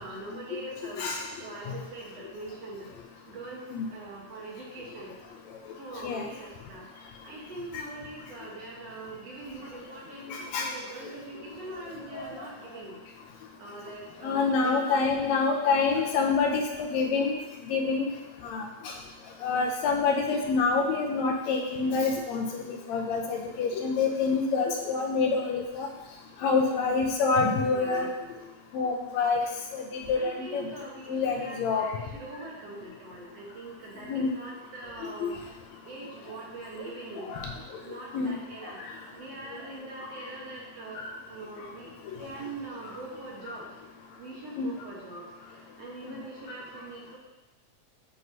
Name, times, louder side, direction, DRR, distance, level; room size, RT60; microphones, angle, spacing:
voice 1, 0.0-1.1 1.4-2.9 3.3-5.1 5.8-13.0 13.6-15.1 27.7-28.2 30.1-35.4 35.8-38.8 39.1-41.9 42.2-43.7 44.2-47.2, right 2 dB, 60° right, -3 dB, 2.2 m, -42 dB
voice 2, 10.3-10.7 12.1-12.3 14.2-17.4 17.7-18.1 18.4-18.9 19.4-25.9 26.4-28.1 28.7-29.4 29.7-30.7 31.1-32.0 34.1-34.3 35.2-35.4 37.3-37.5 38.1-38.4 44.6-44.7, left 4 dB, 75° left, 1 dB, 1.9 m, -27 dB
7.7 x 6.3 x 2.7 m, 1.0 s
omnidirectional pair, 3.4 m